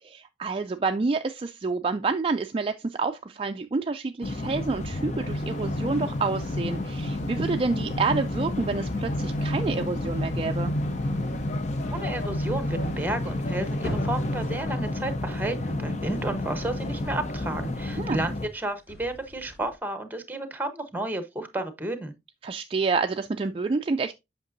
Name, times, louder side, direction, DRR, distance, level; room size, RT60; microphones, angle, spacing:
voice 1, 0.0-10.7 18.0-18.2 22.4-24.1, right 4 dB, 30° right, 0.3 m, -28 dB
sound 1, 4.2-18.5, left 2 dB, 40° left, 0.6 m, -31 dB
sound 2, 5.3-14.6, left 1 dB, 80° left, 0.7 m, -33 dB
voice 2, 11.9-22.1, right 1 dB, 10° right, 0.9 m, -32 dB
sound 3, 13.8-16.8 17.9-19.8, equal, 60° left, 1.4 m, -40 dB
8.2 x 5.8 x 2.6 m
head